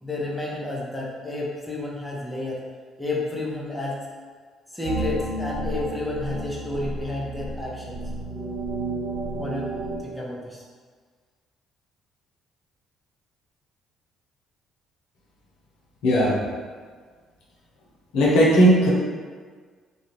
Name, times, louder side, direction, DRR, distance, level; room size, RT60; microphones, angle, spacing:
voice 1, 0.0-2.6 3.0-4.0 4.7-8.0 9.4-9.7 10.0-10.6, left 2 dB, 5° left, -5 dB, 0.7 m, -31 dB
sound 1, 4.8-10.0, right 2 dB, 90° right, 0.5 m, -31 dB
voice 2, 16.0-16.3 18.1-18.9, equal, 80° left, -5 dB, 0.6 m, -17 dB
2.4 x 2.2 x 3.1 m, 1.5 s
hypercardioid pair, 60°, 0 cm